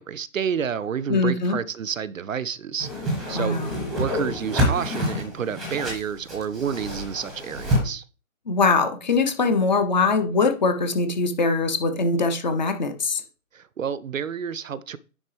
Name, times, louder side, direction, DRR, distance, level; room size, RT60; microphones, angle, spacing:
voice 1, 0.0-3.6 4.0-8.0 13.5-15.0, right 7 dB, 65° right, 0.5 m, -30 dB
voice 2, 1.1-1.6 3.3-3.7 8.5-13.2, left 3 dB, 30° left, 0.8 m, -22 dB
Whoosh swoosh swish, 2.8-7.8, equal, ahead, 0.9 m, -27 dB
9.7 x 3.8 x 3.3 m
figure-of-eight pair, 140°, 44 cm